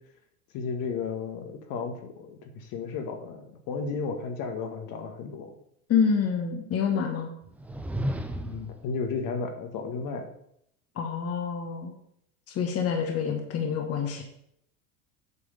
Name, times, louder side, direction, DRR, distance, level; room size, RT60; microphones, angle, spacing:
voice 1, 0.5-5.5 8.3-10.3, left 5 dB, 50° left, 5 dB, 1.5 m, -33 dB
voice 2, 5.9-7.3 10.9-11.9 12.5-14.2, left 6 dB, 35° left, 3 dB, 1.3 m, -27 dB
sound 1, 7.4-8.8, equal, 5° right, 0.3 m, -32 dB
8.4 x 3.5 x 6.7 m, 0.73 s
supercardioid pair, 110°, 42 cm